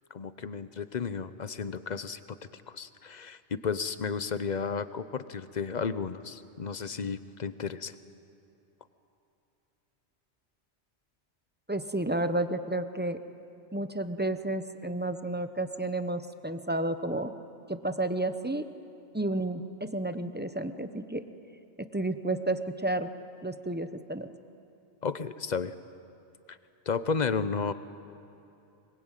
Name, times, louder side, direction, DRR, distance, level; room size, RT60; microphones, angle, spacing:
voice 1, 0.1-7.9 25.0-25.7 26.5-26.6 26.9-27.7, left 5 dB, 45° left, 13 dB, 0.8 m, -33 dB
voice 2, 11.7-13.2 13.7-17.3 17.7-18.7 19.1-21.2 21.8-23.1 23.4-24.3, right 1 dB, 10° right, 9 dB, 0.8 m, -31 dB
24.0 x 22.0 x 9.0 m, 2.8 s
omnidirectional pair, 1.1 m